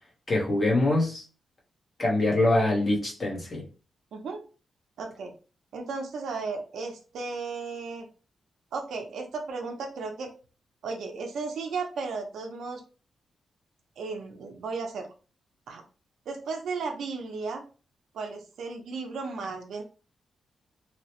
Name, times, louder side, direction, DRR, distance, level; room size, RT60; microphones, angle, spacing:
voice 1, 0.3-1.2 2.0-3.6, left 2 dB, 30° left, -3 dB, 0.8 m, -24 dB
voice 2, 4.1-4.4 5.0-5.3 5.7-8.1 8.7-10.3 10.8-12.8 14.0-15.1 15.7-15.8 16.3-17.6 18.1-19.8, right 4 dB, 80° right, 3 dB, 0.5 m, -35 dB
2.8 x 2.0 x 2.8 m, 0.36 s
wide cardioid pair, 170°, 0 cm